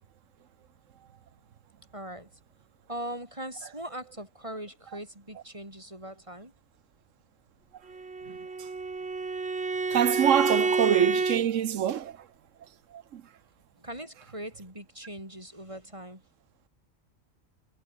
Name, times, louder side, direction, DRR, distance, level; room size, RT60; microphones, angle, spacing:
voice 1, 1.9-2.4 2.9-6.5 13.8-16.2, right 1 dB, 25° right, 7.4 m, -40 dB
Bowed string instrument, 7.9-11.4, right 4 dB, 55° right, 2.5 m, -29 dB
voice 2, 8.3-8.7 9.9-12.3 12.9-13.2, right 10 dB, 75° right, 1.2 m, -26 dB
omnidirectional pair, 1.3 m